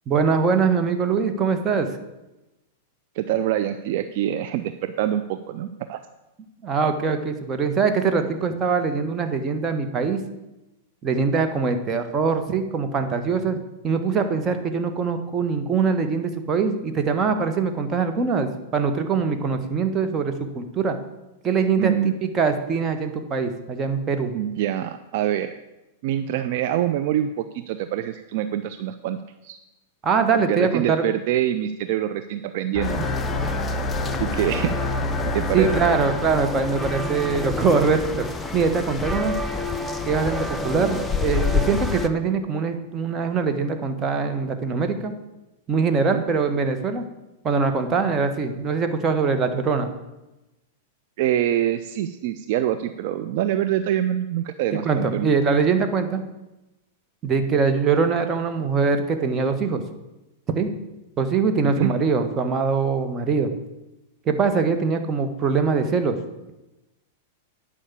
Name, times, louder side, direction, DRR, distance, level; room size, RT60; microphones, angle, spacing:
voice 1, 0.1-1.9 6.6-10.2 11.0-21.0 21.4-24.3 30.0-31.0 35.5-38.2 38.5-39.3 40.1-45.1 45.7-47.0 47.4-49.9 54.8-56.2 57.2-59.8 60.5-60.7 61.2-63.5 64.2-66.2, right 5 dB, 25° right, 6 dB, 1.4 m, -23 dB
voice 2, 3.2-6.0 21.8-22.1 24.3-25.5 26.0-29.6 30.3-33.0 34.2-34.7 35.2-35.7 46.1-46.2 51.2-55.3 61.8-61.9, right 11 dB, 55° right, 10 dB, 0.5 m, -25 dB
sound 1, 32.7-38.0, left 2 dB, 35° left, 1.5 m, -29 dB
sound 2, 32.8-42.1, left 3 dB, 10° left, 0.8 m, -28 dB
10.0 x 5.5 x 8.4 m, 0.99 s
hypercardioid pair, 100°, 0 cm